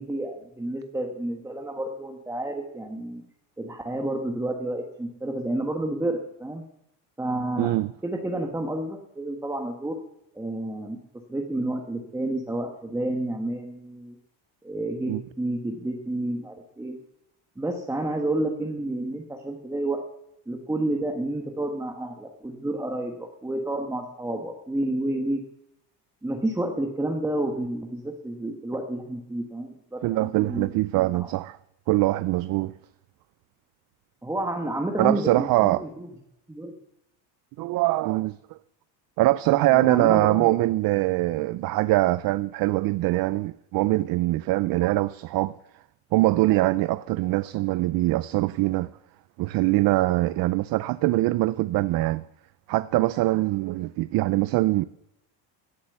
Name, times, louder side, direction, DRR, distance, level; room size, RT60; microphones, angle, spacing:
voice 1, 0.0-3.2 3.6-6.6 7.2-7.7 8.0-9.9 10.3-11.0 11.3-14.2 14.6-17.0 17.6-20.0 20.5-25.4 26.2-30.7 31.1-31.3 34.2-36.1 36.5-36.8 39.7-40.6, right 1 dB, 5° right, 1.4 m, -30 dB
voice 2, 7.6-7.9 15.1-15.2 30.0-31.6 31.9-32.7 35.0-35.8 37.6-38.6 39.2-45.5 46.1-48.9 49.4-52.2 52.7-54.8, right 18 dB, 55° right, 0.5 m, -23 dB
16.5 x 8.6 x 6.8 m
cardioid pair, 145°, 42 cm